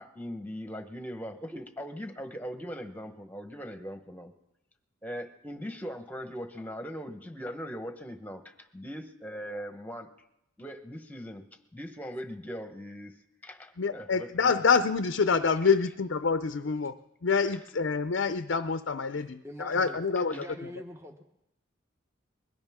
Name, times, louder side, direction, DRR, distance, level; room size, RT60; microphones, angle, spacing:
voice 1, 0.0-4.3 5.0-10.3 10.6-11.4 11.7-14.6 20.2-20.5, equal, 10° left, 7 dB, 1.1 m, -40 dB
voice 2, 13.8-20.5, left 5 dB, 60° left, 11 dB, 0.5 m, -27 dB
voice 3, 19.4-20.0 20.3-21.2, equal, 15° right, 5 dB, 0.9 m, -43 dB
21.5 x 17.0 x 3.6 m, 0.87 s
head